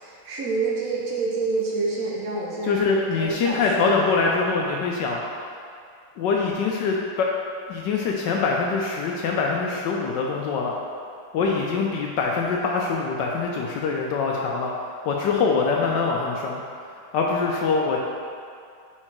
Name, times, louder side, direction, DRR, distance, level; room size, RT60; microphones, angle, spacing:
voice 1, 0.0-4.3, right 3 dB, 80° right, -4 dB, 0.7 m, -28 dB
voice 2, 2.6-5.2 6.2-7.3 7.7-10.8 11.3-14.7 15.1-16.6 17.1-18.0, left 4 dB, 80° left, -1 dB, 1.0 m, -24 dB
4.8 x 4.5 x 4.4 m, 2.3 s
omnidirectional pair, 2.4 m